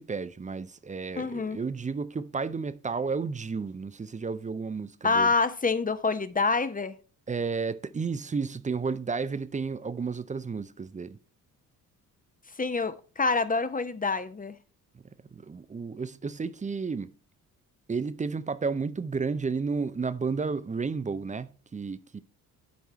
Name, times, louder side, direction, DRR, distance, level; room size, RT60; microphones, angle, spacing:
voice 1, 0.0-5.3 7.3-11.2 14.9-15.0 15.3-17.1 17.9-22.2, right 4 dB, 15° right, 0.5 m, -32 dB
voice 2, 1.1-1.6 5.0-7.0 12.6-14.6, left 4 dB, 20° left, 0.8 m, -26 dB
11.0 x 4.6 x 4.2 m
hypercardioid pair, 45°, 47 cm